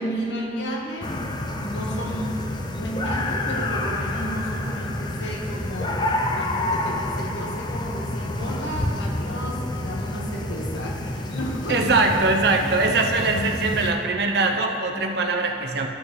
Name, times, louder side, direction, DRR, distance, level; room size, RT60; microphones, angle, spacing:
voice 1, 0.0-2.4 2.7-11.9, equal, 80° left, -1 dB, 1.3 m, -33 dB
sound 1, 1.0-13.9, left 1 dB, 25° left, 0.5 m, -28 dB
voice 2, 11.7-15.9, right 3 dB, 60° right, 3 dB, 0.7 m, -22 dB
12.5 x 6.2 x 3.2 m, 2.6 s
head